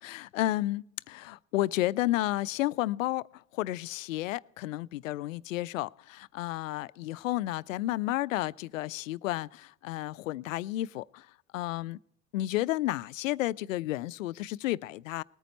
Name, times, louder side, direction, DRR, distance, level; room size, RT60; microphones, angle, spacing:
voice 1, 0.0-3.3 3.5-11.3 11.5-12.0 12.3-15.2, left 16 dB, 70° left, 0.5 m, -32 dB
19.5 x 9.1 x 4.1 m
hypercardioid pair, 90°, 41 cm